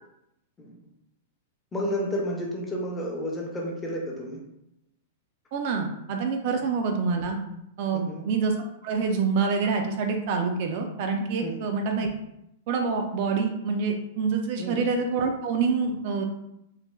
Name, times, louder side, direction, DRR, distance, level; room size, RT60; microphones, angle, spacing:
voice 1, 1.7-4.4 7.9-8.3 11.4-11.6 14.6-14.9, equal, 15° left, -2 dB, 0.5 m, -31 dB
voice 2, 5.5-7.4 7.8-8.5 8.8-12.1 12.7-16.2, right 5 dB, 50° right, 3 dB, 0.3 m, -26 dB
3.1 x 2.1 x 2.2 m, 0.81 s
supercardioid pair, 150°, 0 cm